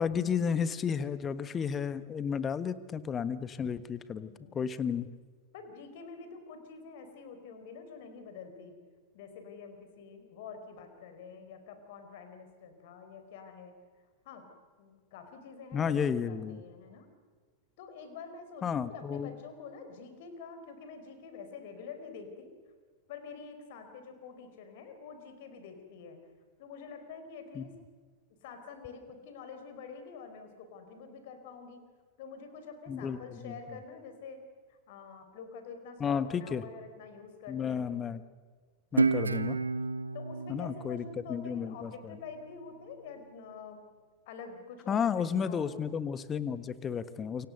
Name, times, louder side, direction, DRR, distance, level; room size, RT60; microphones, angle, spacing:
voice 1, 0.0-5.1 15.7-16.6 18.6-19.3 27.5-27.7 32.9-33.5 36.0-36.6 37.5-38.2 38.9-39.6 40.5-41.0 41.3-41.9 44.9-47.5, left 7 dB, 25° left, 14 dB, 1.3 m, -32 dB
voice 2, 4.2-4.7 5.5-8.8 9.1-13.7 14.2-14.5 14.8-16.0 16.3-17.1 17.8-22.5 23.1-26.2 26.6-27.7 28.4-31.8 32.2-34.4 34.7-37.9 40.1-43.8 44.3-45.8, left 5 dB, 50° left, 7 dB, 4.6 m, -47 dB
Guitar, 39.0-42.2, right 4 dB, 80° right, 0.9 m, -31 dB
29.0 x 25.0 x 6.7 m, 1.6 s
figure-of-eight pair, 90°, 0 cm